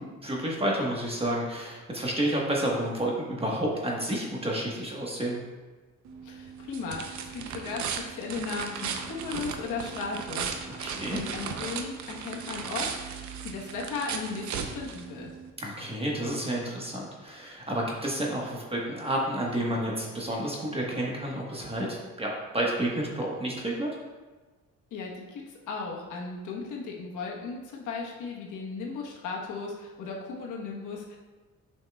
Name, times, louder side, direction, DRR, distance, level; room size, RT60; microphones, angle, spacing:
voice 1, 0.0-5.4 10.7-11.2 15.6-23.9, right 1 dB, 20° right, -3 dB, 1.3 m, -30 dB
sound 1, 6.1-15.5, right 6 dB, 70° right, 0.7 m, -36 dB
voice 2, 6.2-10.9 11.1-15.3 24.9-31.2, left 4 dB, 80° left, -2 dB, 1.2 m, -36 dB
7.6 x 5.6 x 2.3 m, 1.3 s
cardioid pair, 90°, 30 cm